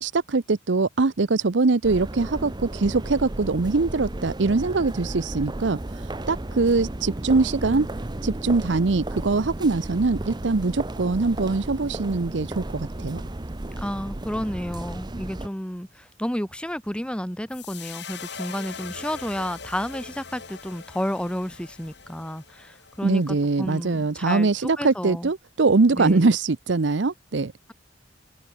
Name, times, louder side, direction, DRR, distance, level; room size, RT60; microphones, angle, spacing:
voice 1, 0.0-7.9 8.2-13.2 23.0-27.5, right 3 dB, 70° right, 0.7 m, -23 dB
sound 1, 1.8-15.5, right 1 dB, 25° right, 0.8 m, -34 dB
voice 2, 13.8-25.3 26.0-26.3, equal, 5° left, 1.7 m, -31 dB
sound 2, 17.5-23.8, left 6 dB, 65° left, 4.8 m, -41 dB
head